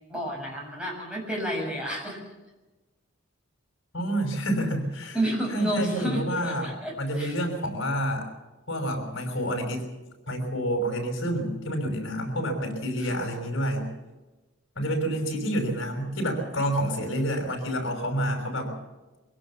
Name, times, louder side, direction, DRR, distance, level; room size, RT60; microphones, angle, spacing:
voice 1, 0.1-2.2 5.1-7.4 13.0-13.3, right 1 dB, 5° right, -2 dB, 6.7 m, -31 dB
voice 2, 3.9-5.2 5.5-6.7 7.0-8.3 8.7-9.9 10.3-13.9 14.8-18.7, equal, 65° left, 3 dB, 5.7 m, -28 dB
23.0 x 17.5 x 7.2 m, 1.1 s
head